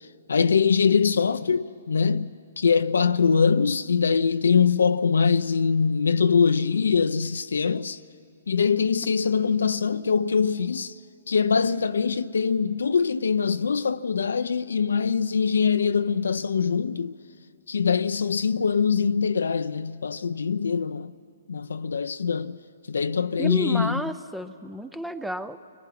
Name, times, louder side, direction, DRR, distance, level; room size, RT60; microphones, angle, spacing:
voice 1, 0.3-8.0 8.5-10.9 11.3-17.1 17.7-21.1 21.5-22.6 22.9-24.0, left 6 dB, 85° left, 0.7 m, -23 dB
voice 2, 23.4-25.6, equal, ahead, 0.6 m, -31 dB
30.0 x 21.5 x 5.9 m
hypercardioid pair, 145°, 0 cm